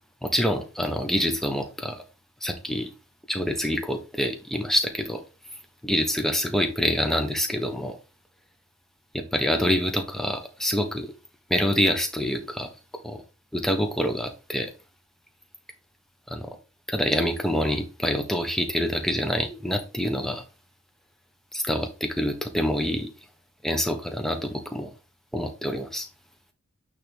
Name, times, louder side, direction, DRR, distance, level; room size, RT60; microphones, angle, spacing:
voice 1, 0.2-2.0 2.4-2.9 3.3-5.2 5.8-8.0 9.1-11.1 11.5-12.7 13.0-13.2 13.5-14.7 16.3-16.6 16.9-20.4 21.5-23.1 23.6-24.9 25.3-26.1, equal, ahead, 5 dB, 0.9 m, -26 dB
8.6 x 3.4 x 3.4 m, 0.30 s
head